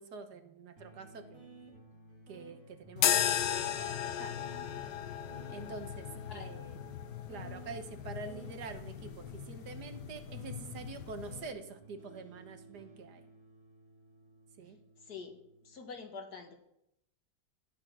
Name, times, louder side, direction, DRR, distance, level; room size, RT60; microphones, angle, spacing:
voice 1, 0.0-1.5 2.3-4.4 5.5-6.1 6.3-6.8 7.3-13.2 14.6-14.8, right 4 dB, 75° right, 8 dB, 1.8 m, -46 dB
sound 1, 0.8-15.8, right 2 dB, 50° right, 3.8 m, -55 dB
sound 2, 3.0-11.5, left 10 dB, 90° left, 1.5 m, -36 dB
voice 2, 6.3-6.6 15.0-15.3 15.6-16.5, left 5 dB, 70° left, 4 dB, 2.4 m, -45 dB
13.0 x 10.5 x 6.3 m, 0.81 s
omnidirectional pair, 1.8 m